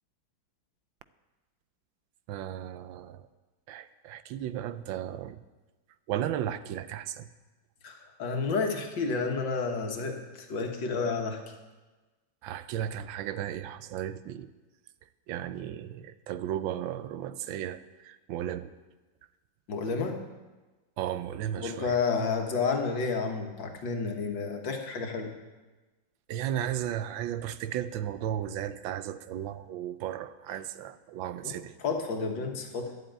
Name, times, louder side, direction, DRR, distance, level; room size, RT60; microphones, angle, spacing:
voice 1, 2.3-3.3 3.7-5.4 6.1-7.3 12.4-14.5 15.3-18.7 21.0-22.0 26.3-31.7, right 11 dB, 80° right, 13 dB, 1.4 m, -35 dB
voice 2, 7.8-11.4 19.7-20.2 21.6-25.3 31.4-31.6 31.8-32.9, left 4 dB, 70° left, 3 dB, 2.1 m, -30 dB
11.5 x 8.0 x 8.9 m, 1.2 s
omnidirectional pair, 2.1 m